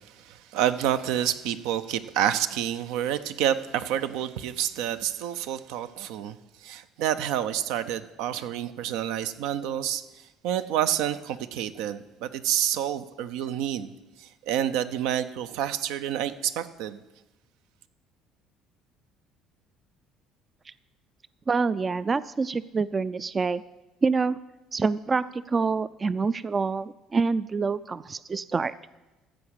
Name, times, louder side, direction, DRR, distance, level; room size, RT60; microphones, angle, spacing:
voice 1, 0.0-10.0 10.4-13.9 14.2-17.0, right 10 dB, 85° right, 11 dB, 0.5 m, -28 dB
voice 2, 21.5-23.6 24.0-24.4 24.7-28.7, right 4 dB, 25° right, 16 dB, 0.3 m, -26 dB
14.5 x 4.9 x 8.1 m, 1.1 s
cardioid pair, 100°, 0 cm